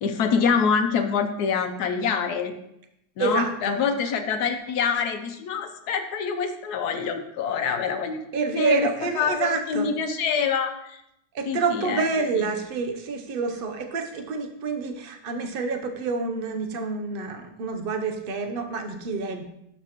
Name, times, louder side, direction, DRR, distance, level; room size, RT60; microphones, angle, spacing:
voice 1, 0.0-2.5 3.2-8.9 9.1-11.0 11.5-12.0 12.5-12.6, left 6 dB, 70° left, 7 dB, 1.2 m, -25 dB
voice 2, 3.2-3.8 8.3-9.9 11.3-19.4, right 4 dB, 55° right, 5 dB, 0.6 m, -28 dB
11.5 x 4.3 x 3.0 m, 0.79 s
omnidirectional pair, 1.9 m